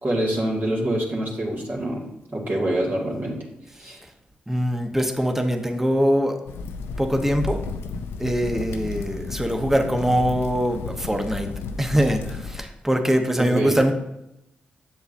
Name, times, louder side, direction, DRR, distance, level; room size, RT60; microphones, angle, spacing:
voice 1, 0.0-2.0 2.3-3.4 3.8-4.0 13.4-13.8, right 1 dB, 50° right, -3 dB, 2.1 m, -25 dB
voice 2, 4.5-6.4 7.0-7.6 8.2-11.5 11.8-13.9, equal, 10° right, 5 dB, 1.0 m, -23 dB
sound 1, 6.5-12.6, left 4 dB, 85° left, 0.4 m, -33 dB
7.9 x 6.8 x 2.7 m, 0.87 s
supercardioid pair, 45°, 4 cm